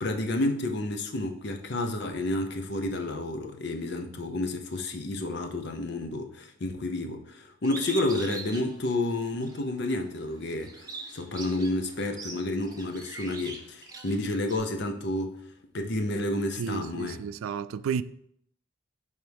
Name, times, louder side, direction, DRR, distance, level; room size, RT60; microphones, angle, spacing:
voice 1, 0.0-10.9 11.1-15.4 15.7-17.2, left 2 dB, 55° left, 0.7 m, -30 dB
Bird, 7.6-9.6 10.1-14.6, right 3 dB, 15° right, 0.8 m, -42 dB
voice 2, 16.6-18.0, right 7 dB, 80° right, 0.3 m, -32 dB
10.5 x 3.5 x 3.5 m
head